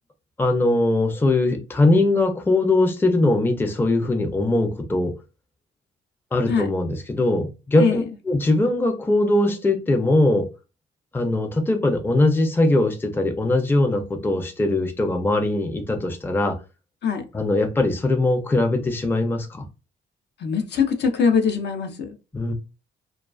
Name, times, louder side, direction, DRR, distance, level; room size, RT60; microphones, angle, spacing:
voice 1, 0.4-5.1 6.3-10.5 11.1-16.6 17.3-19.6 22.3-22.5, left 2 dB, 10° left, 0.4 m, -21 dB
voice 2, 20.4-22.2, left 6 dB, 60° left, 0.6 m, -22 dB
2.3 x 2.3 x 2.3 m
cardioid pair, 90°, 20 cm